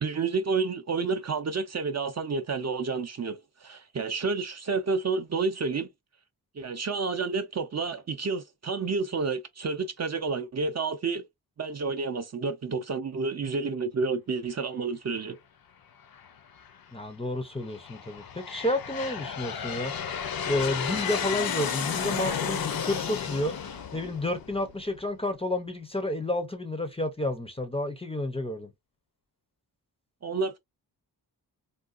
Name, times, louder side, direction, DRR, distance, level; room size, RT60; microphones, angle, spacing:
voice 1, 0.0-5.9 6.6-11.2 11.6-15.4 30.2-30.6, right 4 dB, 45° right, 0.5 m, -30 dB
Aircraft, 16.1-16.7 17.4-25.0, left 7 dB, 60° left, 0.6 m, -33 dB
voice 2, 16.9-19.9 20.4-23.5 23.9-28.7, left 1 dB, 15° left, 0.5 m, -30 dB
3.8 x 2.2 x 2.4 m
wide cardioid pair, 110°, 39 cm